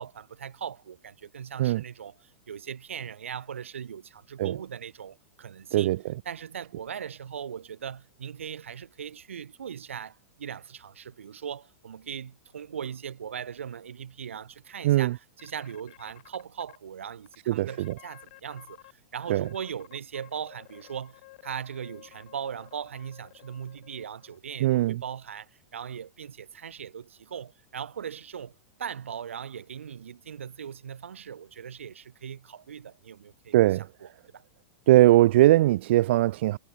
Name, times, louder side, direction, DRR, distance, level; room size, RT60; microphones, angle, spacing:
voice 1, 0.0-5.9 6.2-33.6 34.0-34.4, right 8 dB, 80° right, 1.2 m, -39 dB
voice 2, 5.7-6.2 14.8-15.2 17.5-17.9 19.3-19.5 24.6-25.0 33.5-33.9 34.9-36.6, right 15 dB, 60° right, 0.7 m, -21 dB
sound 1, 15.4-16.8 17.3-17.4 17.7-18.9 19.2-24.4, left 19 dB, 55° left, 6.7 m, -53 dB
hypercardioid pair, 105°, 7 cm